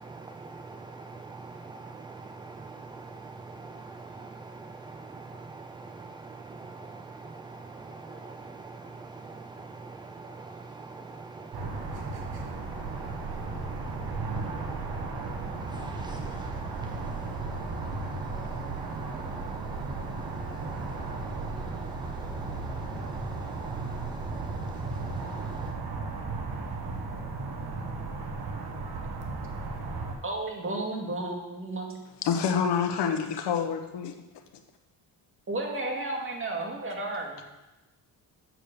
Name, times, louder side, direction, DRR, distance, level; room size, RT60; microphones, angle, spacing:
voice 1, 0.0-25.7, right 3 dB, 10° right, 7 dB, 0.4 m, -44 dB
sound 1, 11.5-30.2, right 3 dB, 65° right, 1.6 m, -35 dB
voice 2, 30.2-31.9 35.5-37.4, right 2 dB, 30° right, 1 dB, 2.1 m, -33 dB
voice 3, 32.2-34.1, left 7 dB, 80° left, 6 dB, 1.2 m, -27 dB
7.6 x 6.8 x 6.7 m, 1.0 s
cardioid pair, 110°, 41 cm